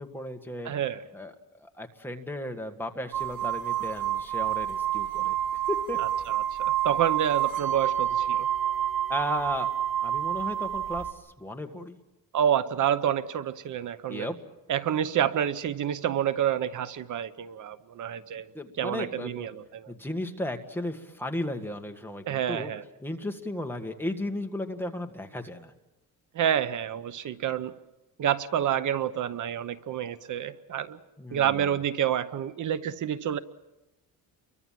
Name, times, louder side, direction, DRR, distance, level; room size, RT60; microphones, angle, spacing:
voice 1, 0.0-0.7 1.1-5.4 5.7-6.0 9.1-9.7 10.0-11.1 11.4-12.0 14.1-14.4 18.5-19.5 19.9-22.7 23.0-25.7 31.2-31.8, left 1 dB, 5° left, 4 dB, 1.8 m, -35 dB
voice 2, 0.6-1.0 6.3-8.5 12.3-14.3 14.7-18.5 18.8-19.9 22.3-22.8 26.3-27.7 28.2-31.0 31.3-33.4, right 10 dB, 60° right, 14 dB, 0.9 m, -28 dB
sound 1, 3.1-11.1, right 11 dB, 75° right, 3.6 m, -28 dB
30.0 x 23.5 x 7.6 m, 0.98 s
cardioid pair, 150°, 35 cm